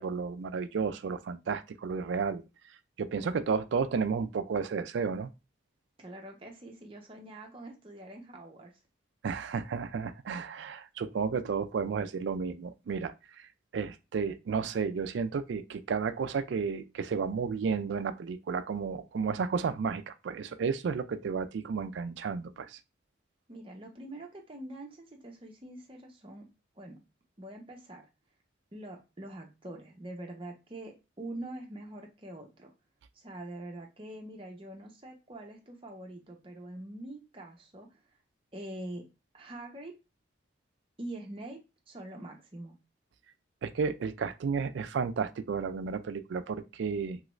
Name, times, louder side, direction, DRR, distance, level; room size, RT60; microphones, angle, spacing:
voice 1, 0.0-2.4 3.0-5.3 9.2-22.8 43.6-47.2, right 5 dB, 65° right, 0.3 m, -32 dB
voice 2, 6.0-8.7 23.5-26.5 26.8-27.0 27.4-28.0 28.7-32.7 33.2-38.0 38.5-39.0 39.3-39.9 41.0-41.6 41.9-42.8, right 1 dB, 25° right, 0.7 m, -44 dB
3.0 x 2.4 x 3.1 m
head